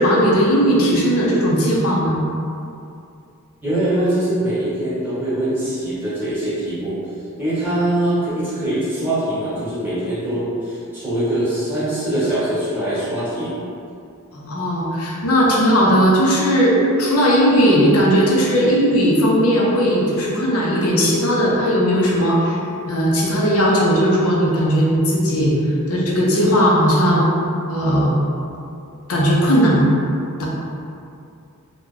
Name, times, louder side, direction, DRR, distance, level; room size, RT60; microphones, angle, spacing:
voice 1, 0.0-2.2 14.3-22.6 22.9-25.5 25.9-27.2 27.7-28.1 29.1-29.9 30.4-30.5, equal, 75° left, -4 dB, 0.7 m, -17 dB
voice 2, 3.6-7.0 7.4-13.6, right 1 dB, 10° right, -12 dB, 1.1 m, -22 dB
3.0 x 2.3 x 3.7 m, 2.5 s
head